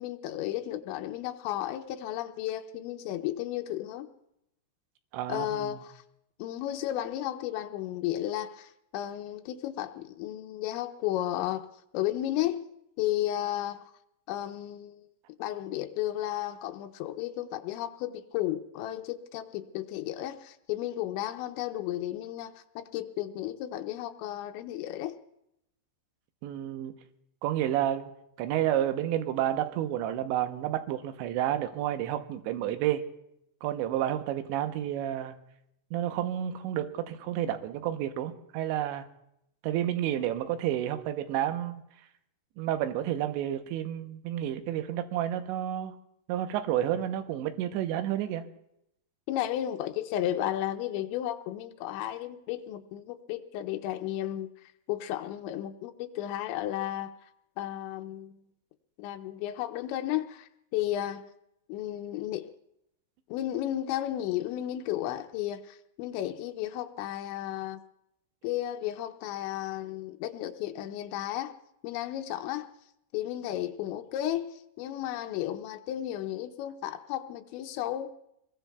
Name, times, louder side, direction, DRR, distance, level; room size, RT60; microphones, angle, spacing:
voice 1, 0.0-4.1 5.3-6.0 6.4-11.7 11.9-12.6 13.0-13.9 14.3-15.1 15.4-25.1 49.3-57.1 57.6-58.4 59.0-61.2 61.7-62.5 63.3-67.8 68.4-71.5 71.8-72.7 73.1-78.1, left 13 dB, 90° left, 3.0 m, -33 dB
voice 2, 5.1-5.8 26.4-26.9 27.4-28.1 28.4-33.0 33.6-35.4 35.9-39.1 39.6-41.8 42.6-45.9 46.3-48.4, right 11 dB, 85° right, 3.2 m, -30 dB
28.0 x 21.5 x 2.3 m
omnidirectional pair, 5.1 m